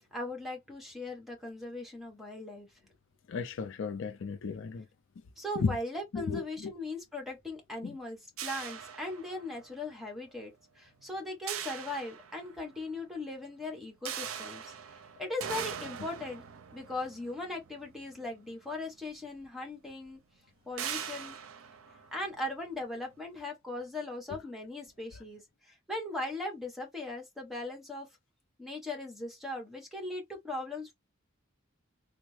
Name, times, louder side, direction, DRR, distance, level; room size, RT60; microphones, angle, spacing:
voice 1, 0.1-2.7 5.4-16.4 16.7-20.2 20.7-21.4 22.1-28.1 28.6-30.9, left 2 dB, ahead, 1.1 m, -39 dB
voice 2, 3.3-4.9 5.6-5.7 6.1-6.7 7.8-7.9 24.3-24.4, left 4 dB, 65° left, 0.4 m, -34 dB
sound 1, 8.4-9.7 11.5-12.8 14.1-18.5 19.4-19.5 19.9-20.1 20.8-22.8, right 8 dB, 75° right, 0.5 m, -41 dB
3.4 x 2.0 x 3.1 m
head